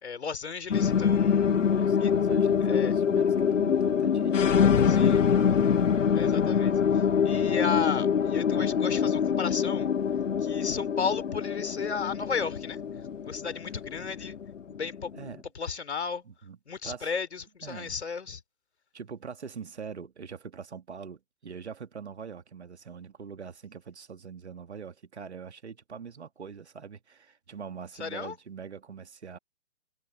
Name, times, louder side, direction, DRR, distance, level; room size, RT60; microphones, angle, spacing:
voice 1, 0.0-1.5 2.0-2.1 2.6-2.9 4.9-5.2 6.1-9.9 10.4-12.8 13.2-14.4 14.7-15.1 15.5-16.2 16.7-18.4 28.0-28.3, left 6 dB, 60° left, 3.5 m, -34 dB
sound 1, 0.7-15.3, left 7 dB, 85° left, 0.6 m, -25 dB
voice 2, 1.5-5.9 14.7-14.8 15.1-15.4 16.3-16.6 16.8-17.1 17.6-18.0 18.9-29.4, right 6 dB, 65° right, 2.1 m, -43 dB
figure-of-eight pair, 130°, 36 cm